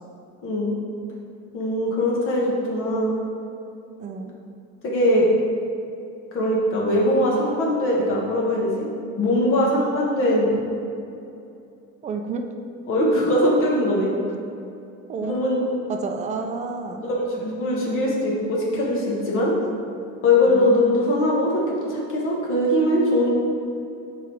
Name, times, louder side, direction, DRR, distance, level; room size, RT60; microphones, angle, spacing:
voice 1, 0.4-0.8 1.5-3.1 4.8-5.3 6.3-8.8 9.2-10.6 12.9-14.1 15.2-15.8 17.0-19.5 20.2-23.3, left 1 dB, 45° left, -3 dB, 1.3 m, -21 dB
voice 2, 4.0-4.3 12.0-12.4 15.1-15.3 15.9-17.0 20.4-20.7, right 4 dB, 25° right, 4 dB, 0.4 m, -30 dB
6.7 x 4.9 x 3.4 m, 2.7 s
cardioid pair, 165°, 29 cm